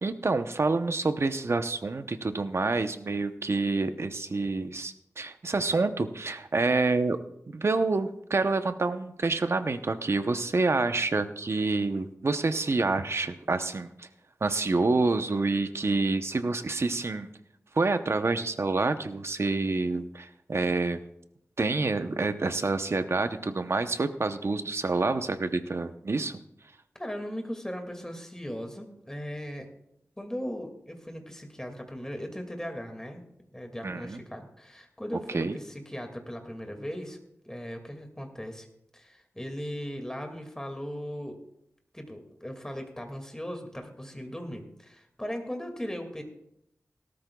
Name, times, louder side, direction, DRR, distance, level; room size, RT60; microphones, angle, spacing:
voice 1, 0.0-7.2 7.5-14.1 14.4-17.3 17.7-21.0 21.6-26.4 33.8-34.2 35.3-35.6, right 3 dB, 55° right, 9 dB, 0.8 m, -27 dB
voice 2, 27.0-29.7 30.2-33.2 33.5-37.2 37.4-38.7 38.9-41.4 41.9-46.2, equal, 10° left, 4 dB, 2.2 m, -38 dB
18.0 x 13.0 x 2.3 m, 0.79 s
wide cardioid pair, 60°, 5 cm